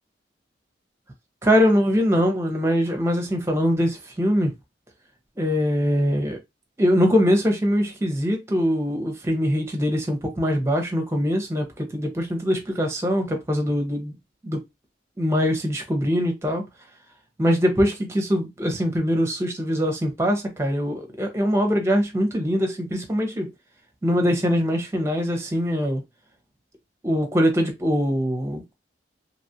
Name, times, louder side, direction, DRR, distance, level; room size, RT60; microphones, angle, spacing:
voice 1, 1.4-4.5 5.4-6.4 6.8-14.2 14.4-14.6 15.2-16.7 17.4-23.5 24.0-26.0 27.0-28.7, equal, 15° right, 0.6 m, -22 dB
2.9 x 2.3 x 2.7 m
head